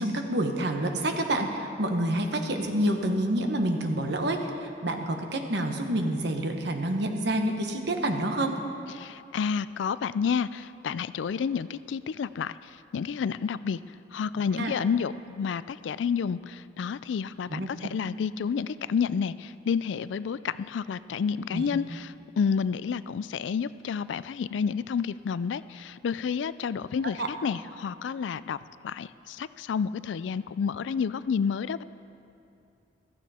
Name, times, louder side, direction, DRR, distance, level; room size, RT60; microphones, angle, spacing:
voice 1, 0.0-8.6 14.5-14.7 17.5-17.7 21.5-21.6 27.2-27.3, right 1 dB, 65° right, 4 dB, 1.2 m, -28 dB
voice 2, 9.0-12.5 12.9-13.8 14.1-28.6 28.8-31.8, left 6 dB, 75° left, 16 dB, 0.3 m, -30 dB
15.0 x 14.0 x 4.3 m, 2.6 s
head